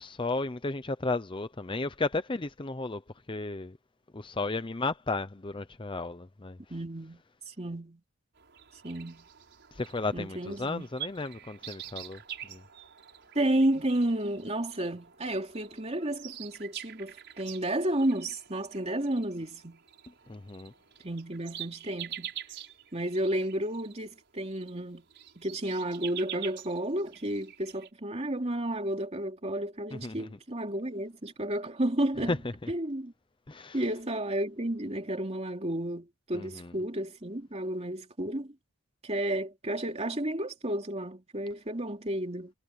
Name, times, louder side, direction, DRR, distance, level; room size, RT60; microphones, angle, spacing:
voice 1, 0.0-3.0 3.3-3.8 4.1-6.6 9.8-12.2 12.5-12.6 20.3-20.7 29.9-30.3 32.3-32.4 32.6-32.7 33.5-33.8 36.3-36.7, left 3 dB, 25° left, 0.7 m, -33 dB
voice 2, 6.7-8.0 8.8-9.3 10.1-10.9 13.3-19.8 21.0-22.3 22.9-25.0 25.4-32.3 32.7-33.1 33.7-38.5 39.0-42.5, right 1 dB, 30° right, 2.9 m, -32 dB
sound 1, 8.3-27.9, right 11 dB, 55° right, 6.0 m, -46 dB
head